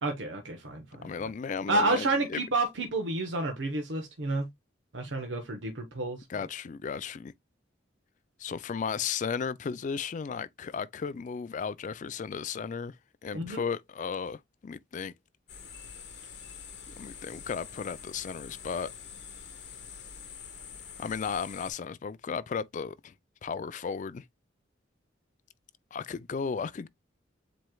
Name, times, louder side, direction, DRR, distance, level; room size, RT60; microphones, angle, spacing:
voice 1, 0.0-1.1 1.7-4.5 4.9-6.2 13.3-13.6, right 2 dB, 75° right, 1.0 m, -30 dB
voice 2, 1.0-2.4 6.3-7.3 8.4-12.9 13.2-15.1 16.9-18.9 21.0-23.1 23.4-24.2 25.9-26.9, left 6 dB, 40° left, 0.3 m, -35 dB
sound 1, 15.5-21.7, left 7 dB, 60° left, 1.3 m, -46 dB
7.6 x 3.1 x 2.2 m
head